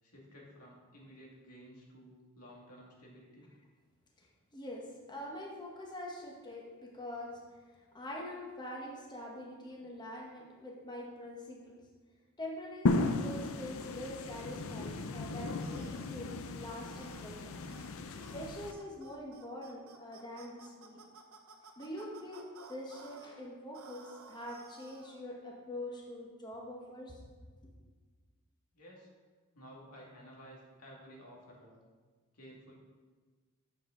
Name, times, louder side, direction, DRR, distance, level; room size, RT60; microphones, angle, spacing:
voice 1, 0.0-3.5 28.7-29.1 29.5-31.8 32.3-32.7, equal, 85° left, -3 dB, 2.1 m, -54 dB
voice 2, 4.5-7.4 7.9-11.8 12.4-17.5 18.3-21.0 21.8-27.2, left 1 dB, 20° left, -2 dB, 1.2 m, -44 dB
sound 1, 12.9-18.7, left 2 dB, 65° left, 0.6 m, -35 dB
sound 2, 15.6-16.1 16.9-17.3 17.7-17.9 18.2-18.4 18.7-23.3 23.7-25.2, right 4 dB, 70° right, 0.9 m, -55 dB
8.8 x 7.2 x 3.8 m, 1.4 s
head